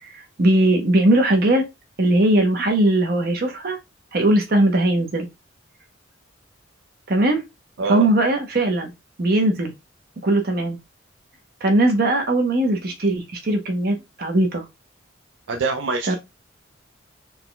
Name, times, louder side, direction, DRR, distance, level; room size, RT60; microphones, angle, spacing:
voice 1, 0.0-1.6 2.0-3.8 4.1-5.3 7.1-7.4 7.9-8.9 9.2-9.7 10.2-10.8 11.6-14.6 16.1-16.2, right 1 dB, 50° right, 0.8 m, -19 dB
voice 2, 15.5-16.1, right 4 dB, 75° right, 0.5 m, -24 dB
4.2 x 2.2 x 3.8 m
head